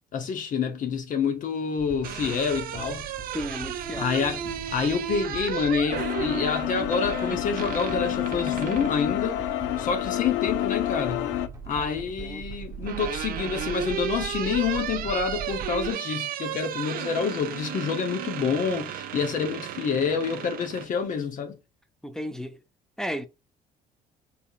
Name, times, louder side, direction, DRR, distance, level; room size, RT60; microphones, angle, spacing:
voice 1, 0.1-3.0 4.0-9.4 9.8-11.3 11.7-21.5, left 6 dB, 50° left, 0.8 m, -28 dB
sound 1, 1.7-9.0 10.5-11.1 12.4-20.9, right 10 dB, 60° right, 0.5 m, -34 dB
sound 2, 1.8-15.9, right 5 dB, 20° right, 0.9 m, -41 dB
voice 2, 3.3-4.1 11.7-11.9 12.2-12.4 22.0-22.6 23.0-23.3, equal, 5° left, 0.4 m, -34 dB
sound 3, 5.9-11.5, left 13 dB, 85° left, 0.4 m, -29 dB
4.1 x 2.7 x 2.4 m
cardioid pair, 110°, 17 cm